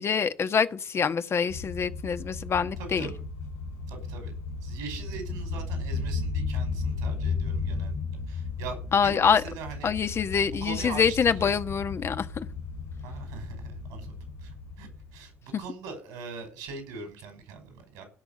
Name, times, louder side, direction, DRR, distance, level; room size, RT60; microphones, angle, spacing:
voice 1, 0.0-3.1 8.9-9.4 9.8-12.5, left 6 dB, 45° left, 1.2 m, -25 dB
sound 1, 1.5-15.3, left 4 dB, 75° left, 5.2 m, -34 dB
voice 2, 2.8-3.2 3.9-4.3 4.6-8.0 8.3-9.9 10.6-11.6 13.0-18.0, right 5 dB, 75° right, 5.4 m, -41 dB
16.5 x 6.2 x 8.5 m
hypercardioid pair, 50°, 6 cm